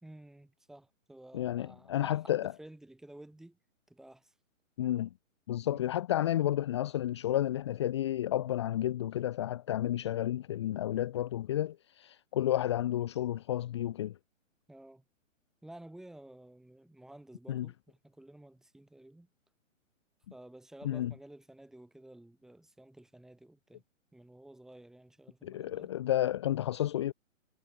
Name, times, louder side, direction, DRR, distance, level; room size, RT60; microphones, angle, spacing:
voice 1, 0.0-3.6 3.9-4.3 5.7-5.8 14.7-15.0 15.6-19.3 20.3-23.8 24.1-25.9, right 1 dB, ahead, 2.1 m, -53 dB
voice 2, 1.3-2.5 4.8-5.1 5.5-14.1 17.5-17.7 20.8-21.1 25.4-27.1, left 12 dB, 20° left, 1.0 m, -31 dB
hypercardioid pair, 170°, 39 cm